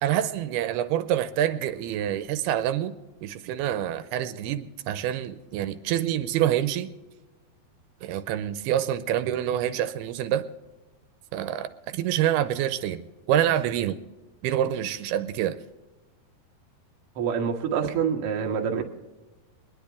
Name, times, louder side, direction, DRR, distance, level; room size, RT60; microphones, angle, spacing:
voice 1, 0.0-2.9 3.2-6.9 8.0-10.5 11.3-13.0 13.3-14.0 14.4-15.6, right 11 dB, 85° right, 10 dB, 2.6 m, -26 dB
voice 2, 17.2-18.8, right 7 dB, 55° right, 1 dB, 1.6 m, -26 dB
23.0 x 10.5 x 3.6 m, 1.2 s
omnidirectional pair, 4.6 m